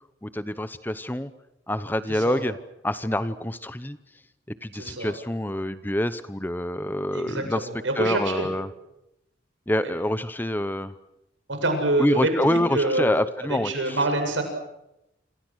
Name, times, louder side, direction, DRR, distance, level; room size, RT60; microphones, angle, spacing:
voice 1, 0.2-1.3 1.7-2.5 2.8-4.0 4.6-7.7 8.0-8.7 9.7-10.9 12.0-14.0, left 1 dB, 10° left, 13 dB, 0.8 m, -26 dB
voice 2, 2.1-2.4 4.7-5.1 7.1-8.5 9.8-9.9 11.5-13.1 13.4-14.4, right 2 dB, 85° right, 5 dB, 7.6 m, -26 dB
27.5 x 27.5 x 6.4 m, 0.87 s
head